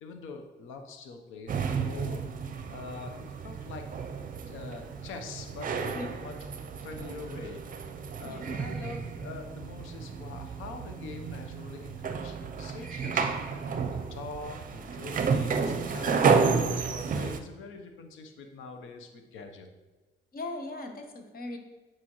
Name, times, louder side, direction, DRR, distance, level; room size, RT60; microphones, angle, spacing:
voice 1, 0.0-2.2 2.7-3.9 4.5-7.6 8.2-19.7, left 4 dB, 85° left, 5 dB, 0.8 m, -44 dB
sound 1, 1.5-17.4, right 5 dB, 45° right, 0.6 m, -31 dB
voice 2, 20.3-21.6, left 2 dB, 50° left, 5 dB, 1.1 m, -38 dB
8.6 x 4.4 x 3.0 m, 1.3 s
cardioid pair, 90°, 20 cm